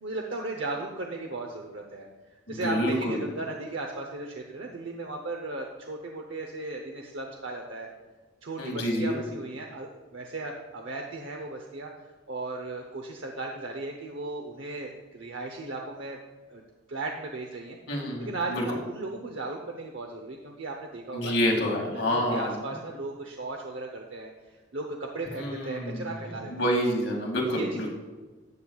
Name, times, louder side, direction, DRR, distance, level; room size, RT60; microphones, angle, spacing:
voice 1, 0.0-2.1 2.5-7.9 8.4-11.9 12.3-16.2 16.5-17.8 18.2-21.6 21.9-26.5 27.5-27.9, right 2 dB, 75° right, 2 dB, 0.8 m, -36 dB
voice 2, 2.5-3.2 8.6-9.2 17.9-18.6 21.1-22.6 25.4-26.1 26.5-27.9, equal, 75° left, -1 dB, 2.2 m, -28 dB
13.0 x 8.4 x 2.4 m, 1.3 s
head